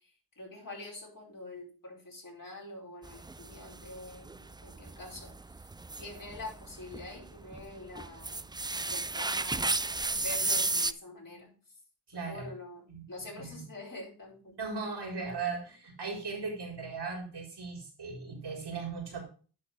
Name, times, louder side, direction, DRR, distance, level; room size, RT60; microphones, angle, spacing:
voice 1, 0.4-5.4 6.0-9.8 10.2-11.5 12.3-14.5, left 2 dB, 50° left, -2 dB, 4.7 m, -45 dB
sound 1, 3.0-10.9, right 3 dB, 10° right, 0.3 m, -34 dB
voice 2, 12.1-12.5 12.9-13.1 13.4-13.6 14.6-19.2, right 4 dB, 80° right, 1 dB, 4.4 m, -38 dB
10.5 x 4.4 x 5.7 m, 0.38 s
cardioid pair, 60°, 40 cm